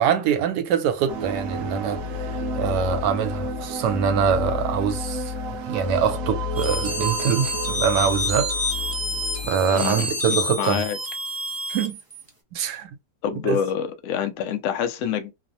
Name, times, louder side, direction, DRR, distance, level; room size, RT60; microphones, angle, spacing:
voice 1, 0.0-8.6 9.4-10.8 11.7-12.0 12.5-13.0 13.4-13.6, right 7 dB, 85° right, 1.2 m, -24 dB
sound 1, 1.1-9.5, left 1 dB, 65° right, 1.0 m, -30 dB
sound 2, 6.5-12.3, left 1 dB, 30° right, 0.4 m, -28 dB
voice 2, 9.7-11.0 13.2-15.3, left 8 dB, 70° left, 0.7 m, -27 dB
3.1 x 2.0 x 2.6 m
omnidirectional pair, 1.8 m